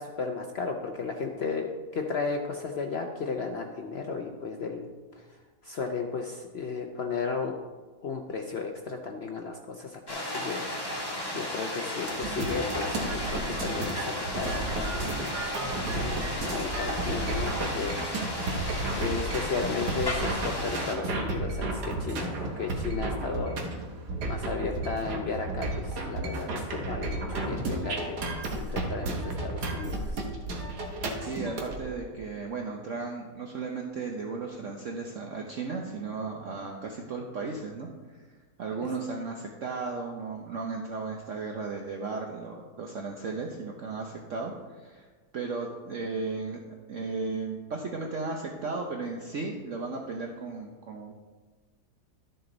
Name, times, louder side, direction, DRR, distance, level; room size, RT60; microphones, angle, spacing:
voice 1, 0.0-4.9 5.2-5.3 5.6-7.6 8.0-10.6 10.9-11.0 11.3-18.0 19.0-23.7 24.3-30.2, left 4 dB, 60° left, 3 dB, 0.6 m, -34 dB
sound 1, 10.1-20.9, left 1 dB, 15° left, 1.3 m, -34 dB
sound 2, 12.1-31.8, right 2 dB, 75° right, 1.8 m, -33 dB
voice 2, 31.3-38.2 38.6-45.1 45.3-46.6 46.9-51.1, right 4 dB, 55° right, 1 dB, 1.0 m, -35 dB
12.5 x 6.7 x 3.9 m, 1.4 s
omnidirectional pair, 1.8 m